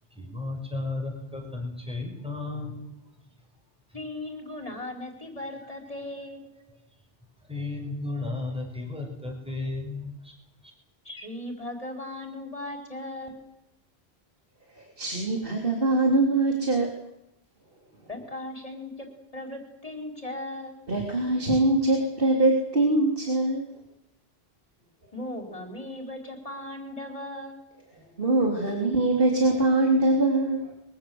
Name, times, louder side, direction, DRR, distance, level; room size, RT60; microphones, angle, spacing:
voice 1, 0.1-2.9 3.9-4.0 5.6-5.7 7.5-10.3 10.6-10.7, left 3 dB, 5° right, 2 dB, 5.9 m, -34 dB
voice 2, 3.9-6.5 11.0-13.5 18.1-19.1 19.3-20.8 25.1-27.7, left 1 dB, 35° left, 3 dB, 4.6 m, -37 dB
voice 3, 14.7-16.9 20.9-23.7 28.2-30.7, right 2 dB, 60° right, 1 dB, 3.5 m, -23 dB
24.5 x 23.0 x 7.8 m, 0.87 s
omnidirectional pair, 1.0 m